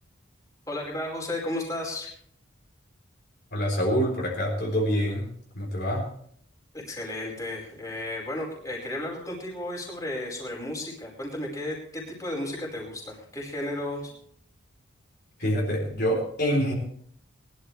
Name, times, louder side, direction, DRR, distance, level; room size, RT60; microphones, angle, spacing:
voice 1, 0.7-2.1 6.7-14.1, left 1 dB, 15° left, -3 dB, 4.9 m, -33 dB
voice 2, 3.5-5.3 5.5-6.1 15.4-16.7, equal, 50° left, -2 dB, 3.8 m, -26 dB
22.0 x 12.0 x 3.4 m, 0.63 s
head